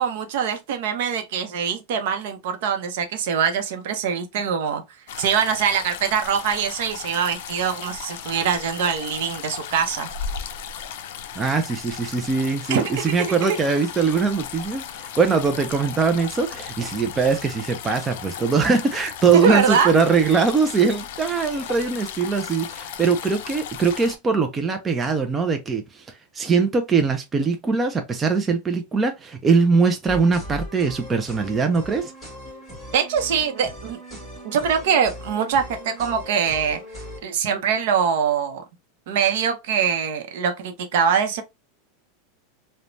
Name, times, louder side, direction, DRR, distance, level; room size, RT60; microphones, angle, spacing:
voice 1, 0.0-4.8 5.2-10.1 12.7-13.6 19.3-19.9 32.9-34.0 34.4-36.8 37.2-38.6 39.1-41.4, right 7 dB, 60° right, 0.6 m, -23 dB
sound 1, 5.1-24.2, left 8 dB, 65° left, 0.4 m, -36 dB
voice 2, 11.4-32.1, right 5 dB, 15° right, 0.3 m, -21 dB
sound 2, 30.1-37.2, equal, 10° left, 1.4 m, -39 dB
3.1 x 2.1 x 2.5 m
supercardioid pair, 165°, 0 cm